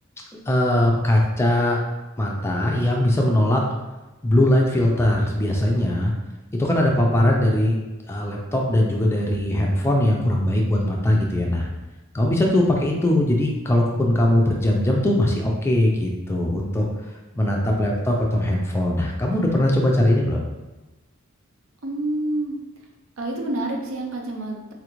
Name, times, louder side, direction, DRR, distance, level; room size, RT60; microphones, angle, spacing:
voice 1, 0.5-1.8 2.2-3.6 4.2-6.1 6.5-7.7 8.1-11.7 12.1-16.9 17.3-20.4, left 1 dB, 10° left, -1 dB, 0.4 m, -20 dB
voice 2, 21.8-22.6 23.2-24.7, right 1 dB, 75° right, 1 dB, 0.6 m, -27 dB
4.0 x 2.5 x 3.0 m, 1.1 s
head